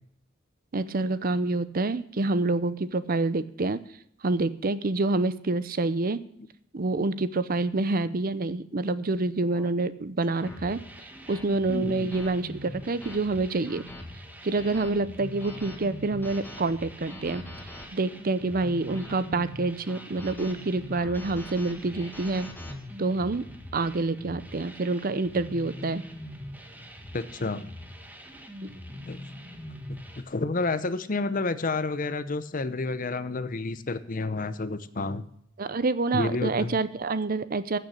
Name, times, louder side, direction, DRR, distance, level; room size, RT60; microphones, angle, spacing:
voice 1, 0.7-3.8 4.2-6.2 6.7-10.8 11.3-13.8 14.4-17.4 17.9-22.5 23.0-23.4 23.7-26.0 28.6-28.7 35.6-37.8, right 3 dB, 45° right, 15 dB, 0.7 m, -27 dB
sound 1, 8.7-8.9 9.5-9.7 10.4-10.6 11.3-11.5 12.1-12.3 12.8-13.2 13.7-14.0 14.5-14.9 15.4-15.8 16.2-16.6 17.1-17.9 18.5-19.2 19.9-20.5 21.0-22.7, left 1 dB, 10° left, 1.9 m, -45 dB
sound 2, 10.3-30.2, left 1 dB, 10° right, 1.4 m, -43 dB
voice 2, 11.7-12.2 27.1-27.6 29.1-29.2 29.9-30.0 30.3-35.2 36.1-36.8, left 3 dB, 45° left, 13 dB, 0.8 m, -30 dB
14.5 x 6.8 x 6.5 m, 0.71 s
head